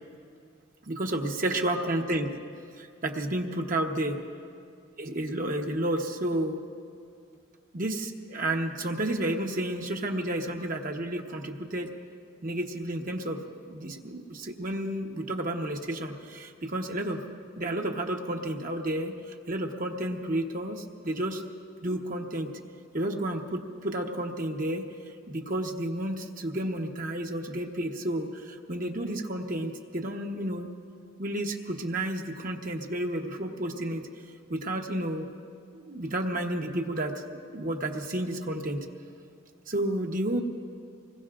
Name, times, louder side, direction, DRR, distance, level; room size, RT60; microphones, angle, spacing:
voice 1, 0.8-2.3 2.8-4.2 5.0-6.6 7.7-11.9 12.4-13.4 13.7-17.2 17.6-21.4 21.8-22.5 22.9-24.9 25.3-30.7 31.2-34.1 34.5-35.3 35.7-37.1 37.5-38.8 39.7-40.4, right 1 dB, 45° right, 2 dB, 1.1 m, -31 dB
25.5 x 21.0 x 2.5 m, 2.3 s
head